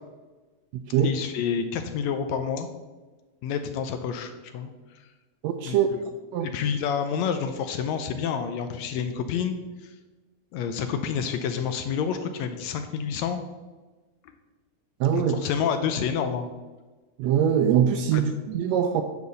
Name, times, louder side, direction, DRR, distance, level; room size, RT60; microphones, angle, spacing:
voice 1, 1.0-2.7 3.4-5.0 5.7-5.8 6.0-6.1 6.4-9.6 9.8-9.9 10.5-13.4 15.1-16.5 18.1-18.2, left 7 dB, 75° left, 8 dB, 1.8 m, -29 dB
voice 2, 5.4-5.9 6.3-6.5 15.0-15.3 17.2-19.0, right 9 dB, 80° right, 7 dB, 1.6 m, -22 dB
9.5 x 4.6 x 6.7 m, 1.3 s
omnidirectional pair, 3.4 m